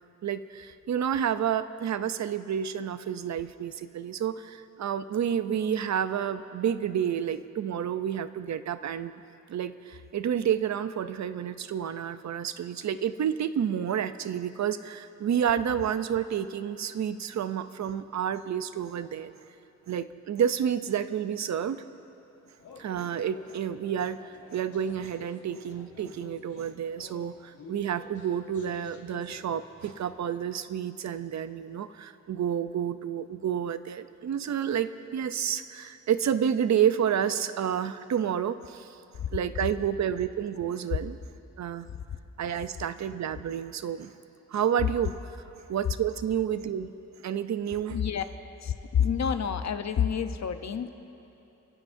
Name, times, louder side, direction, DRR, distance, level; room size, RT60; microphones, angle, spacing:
voice 1, 0.2-9.1 9.5-19.3 19.9-21.8 22.8-39.0 39.3-41.2 41.6-41.9 42.4-44.1 44.5-45.2 45.7-46.9 47.2-48.0, right 9 dB, 70° right, 12 dB, 0.6 m, -30 dB
sound 1, 22.6-30.5, left 4 dB, 85° left, 1.5 m, -50 dB
voice 2, 47.9-48.2 48.6-50.9, left 8 dB, 65° left, 8 dB, 0.8 m, -28 dB
29.5 x 16.0 x 2.7 m, 2.8 s
wide cardioid pair, 140°, 30 cm